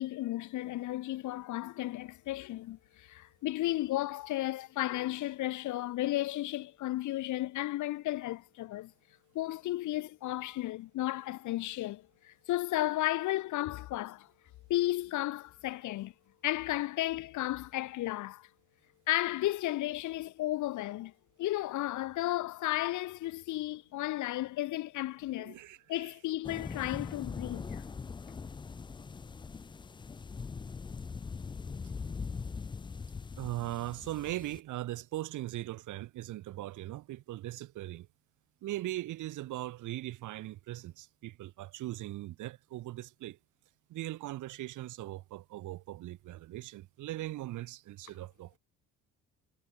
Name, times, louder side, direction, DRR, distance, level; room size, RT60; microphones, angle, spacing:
voice 1, 0.0-8.9 9.3-14.3 14.7-16.1 16.4-18.5 19.1-21.1 21.4-25.6 25.9-27.8, left 16 dB, 65° left, 0.7 m, -34 dB
voice 2, 25.4-26.3 33.4-38.1 38.6-43.4 43.9-48.6, right 15 dB, 65° right, 0.9 m, -40 dB
sound 1, 26.4-34.6, left 5 dB, 15° left, 0.4 m, -41 dB
cardioid pair, 155°, 33 cm